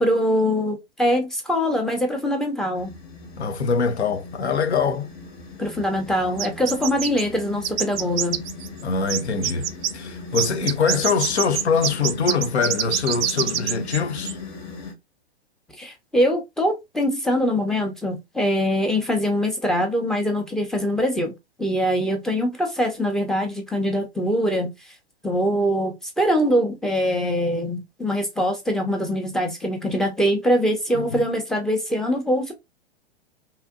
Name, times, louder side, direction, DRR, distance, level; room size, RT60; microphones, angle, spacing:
voice 1, 0.0-2.9 5.6-8.4 15.8-21.3 21.6-24.7 25.2-32.5, equal, ahead, 0.5 m, -23 dB
sound 1, 2.8-14.9, left 3 dB, 50° left, 1.1 m, -38 dB
voice 2, 3.4-5.1 8.8-9.7 9.9-14.4 30.9-31.2, left 5 dB, 85° left, 0.6 m, -23 dB
sound 2, 6.4-7.2 7.6-8.8 9.1-9.9 10.3-14.0 14.3-14.4, right 10 dB, 65° right, 0.5 m, -25 dB
2.8 x 2.4 x 2.4 m
hypercardioid pair, 110°, 32 cm